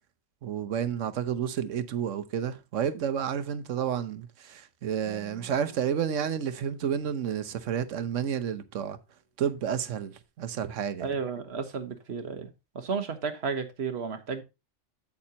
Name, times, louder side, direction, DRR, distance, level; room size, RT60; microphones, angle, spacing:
voice 1, 0.4-9.0 9.4-11.1, right 8 dB, 85° right, 1.2 m, -30 dB
Acoustic guitar, 5.1-8.8, left 1 dB, 20° left, 2.6 m, -56 dB
voice 2, 11.0-12.5 12.7-14.4, right 5 dB, 60° right, 1.4 m, -33 dB
8.5 x 8.5 x 2.8 m
omnidirectional pair, 1.3 m